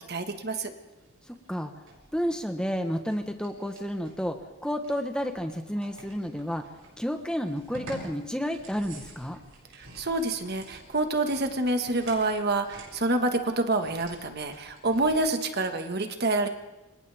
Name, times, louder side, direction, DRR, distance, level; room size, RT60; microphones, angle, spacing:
voice 1, 0.1-0.7 9.8-16.5, right 2 dB, 50° right, 6 dB, 1.7 m, -27 dB
sound 1, 0.9-15.2, right 2 dB, 75° right, 7.1 m, -50 dB
voice 2, 1.3-1.7 2.1-6.6 7.0-9.4, equal, 5° left, 5 dB, 1.2 m, -31 dB
29.5 x 25.5 x 3.6 m, 1.0 s
head